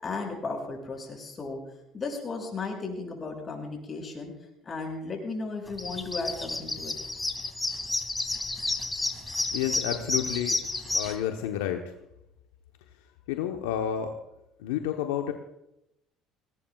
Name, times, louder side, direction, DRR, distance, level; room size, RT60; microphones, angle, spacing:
voice 1, 0.0-1.6 1.9-4.3 4.6-6.9, left 3 dB, 35° left, 1 dB, 6.4 m, -35 dB
sound 1, 5.7-11.1, left 2 dB, 15° left, 2.3 m, -31 dB
voice 2, 9.5-10.6 10.9-11.8 13.3-14.1 14.6-15.3, left 10 dB, 85° left, 4 dB, 0.9 m, -30 dB
21.5 x 19.0 x 2.4 m, 0.85 s
hypercardioid pair, 70°, 0 cm